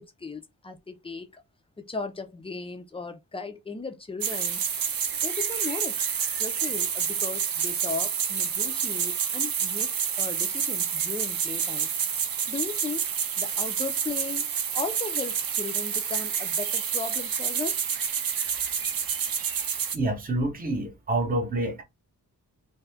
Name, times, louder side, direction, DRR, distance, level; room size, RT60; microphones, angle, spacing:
voice 1, 0.0-1.4 1.8-4.6 5.2-6.1 6.4-11.9 12.5-13.1 13.4-17.8, left 4 dB, 15° left, 0.4 m, -36 dB
sound 1, 4.2-20.0, right 7 dB, 80° right, 0.7 m, -28 dB
voice 2, 19.9-21.8, right 2 dB, 25° right, 0.8 m, -27 dB
2.6 x 2.4 x 3.3 m
wide cardioid pair, 180°, 34 cm